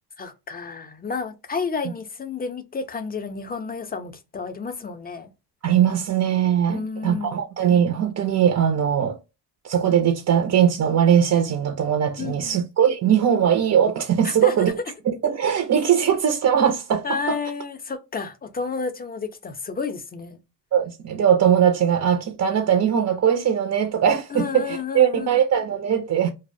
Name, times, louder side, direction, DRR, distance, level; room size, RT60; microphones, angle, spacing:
voice 1, 0.2-5.3 6.7-7.4 12.2-12.6 14.2-14.5 16.0-16.1 17.0-20.4 24.3-25.4, left 5 dB, 25° left, 0.5 m, -31 dB
voice 2, 5.6-9.2 9.6-14.7 15.1-17.4 20.7-26.3, right 9 dB, 45° right, 0.4 m, -20 dB
2.5 x 2.0 x 2.5 m
cardioid pair, 90°, 42 cm